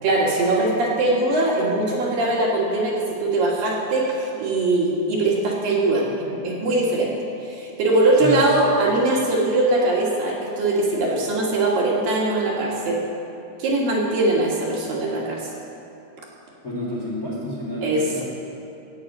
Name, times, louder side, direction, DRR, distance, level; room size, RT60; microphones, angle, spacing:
voice 1, 0.0-3.0 3.2-7.1 7.4-13.0 13.6-15.5 17.8-18.2, right 2 dB, 60° right, -4 dB, 3.2 m, -21 dB
voice 2, 16.6-18.2, left 1 dB, 30° left, -6 dB, 1.6 m, -29 dB
17.5 x 8.7 x 5.4 m, 2.7 s
omnidirectional pair, 4.9 m